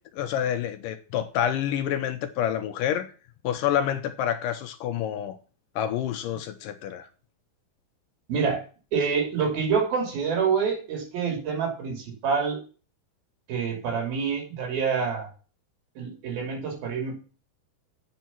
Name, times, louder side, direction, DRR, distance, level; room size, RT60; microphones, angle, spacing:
voice 1, 0.1-3.1 3.4-5.4 5.8-7.1, left 10 dB, 80° left, 2.1 m, -28 dB
voice 2, 8.3-8.6 8.9-12.6 13.5-15.3 16.0-17.2, right 6 dB, 75° right, 4.6 m, -27 dB
8.2 x 6.4 x 6.0 m
omnidirectional pair, 4.3 m